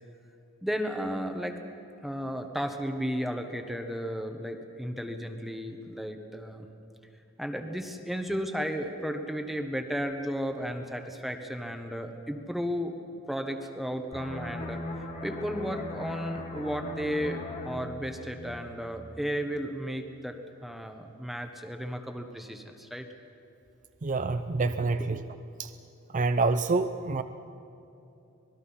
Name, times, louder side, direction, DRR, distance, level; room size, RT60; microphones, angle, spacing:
voice 1, 0.6-1.6 2.0-6.7 7.4-12.9 13.3-23.1 24.6-25.1, equal, ahead, 5 dB, 1.2 m, -34 dB
sound 1, 14.1-19.5 19.8-20.1, left 2 dB, 35° left, 1.6 m, -39 dB
voice 2, 24.0-25.2 25.6-25.7 26.1-27.2, right 3 dB, 40° right, 9 dB, 0.6 m, -27 dB
26.0 x 20.0 x 5.7 m, 2.8 s
head